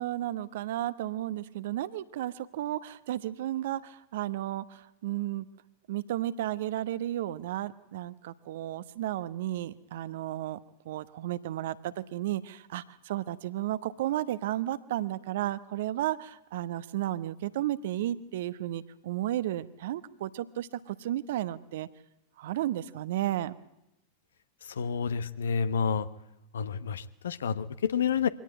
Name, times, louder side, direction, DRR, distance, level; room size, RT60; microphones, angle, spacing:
voice 1, 0.0-5.5 5.9-10.6 10.8-21.9 22.4-23.5, right 13 dB, 55° right, 15 dB, 1.0 m, -33 dB
voice 2, 24.8-26.1 26.5-28.3, left 6 dB, 65° left, 15 dB, 1.1 m, -29 dB
24.0 x 18.0 x 9.6 m, 0.87 s
figure-of-eight pair, 90°, 0 cm